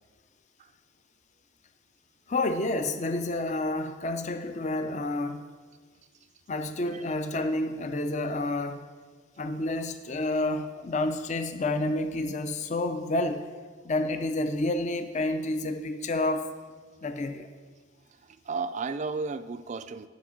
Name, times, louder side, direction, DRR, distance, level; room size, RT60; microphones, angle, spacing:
voice 1, 2.3-5.4 6.5-8.8 9.4-13.4 13.8-16.5 17.0-17.5, left 2 dB, 35° left, 8 dB, 0.4 m, -29 dB
voice 2, 18.1-20.1, right 4 dB, 35° right, 12 dB, 0.3 m, -34 dB
9.3 x 5.7 x 6.3 m, 1.5 s
head